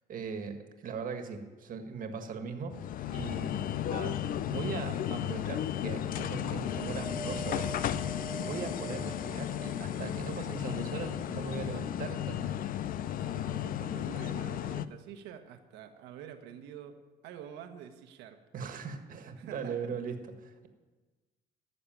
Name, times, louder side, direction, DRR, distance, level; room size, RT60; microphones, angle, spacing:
voice 1, 0.1-2.8 3.1-4.2 4.5-7.8 8.4-12.6 18.5-20.7, right 5 dB, 55° right, 6 dB, 1.7 m, -39 dB
sound 1, 2.7-14.8, left 11 dB, 55° left, 0.5 m, -34 dB
Wind, 6.6-10.1 10.7-11.7 12.5-12.6, right 4 dB, 15° right, 0.4 m, -45 dB
voice 2, 13.2-17.0 17.2-18.4 19.4-19.8, right 9 dB, 90° right, 6 dB, 1.4 m, -47 dB
14.5 x 6.8 x 9.0 m, 1.3 s
cardioid pair, 110°, 17 cm